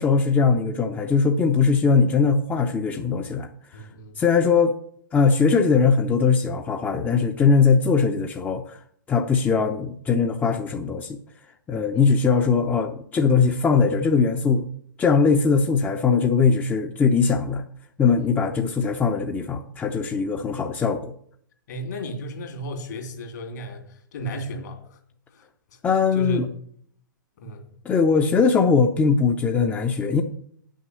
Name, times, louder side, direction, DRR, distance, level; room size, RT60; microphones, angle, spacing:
voice 1, 0.0-3.5 3.7-3.9 4.2-4.8 5.1-8.8 9.1-11.2 11.7-14.7 15.0-17.6 18.0-21.1 25.8-26.5 27.8-30.2, left 5 dB, 15° left, 0.7 m, -20 dB
voice 2, 3.7-4.2 11.9-12.2 18.2-18.4 21.7-25.0 25.3-25.8 26.1-26.4 27.4-27.7, equal, 60° left, 2.7 m, -34 dB
9.0 x 6.4 x 8.2 m
figure-of-eight pair, 110°, 11 cm